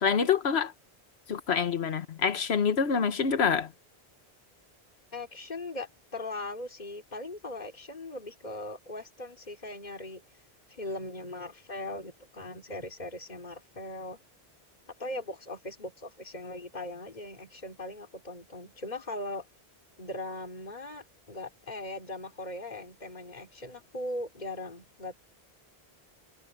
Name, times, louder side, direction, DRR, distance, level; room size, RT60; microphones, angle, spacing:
voice 1, 0.0-0.7 1.3-3.7, left 6 dB, 80° left, 1.4 m, -26 dB
voice 2, 5.1-10.2 10.7-14.2 15.0-19.4 20.0-25.1, left 2 dB, 45° left, 3.3 m, -39 dB
omnidirectional pair, 1.1 m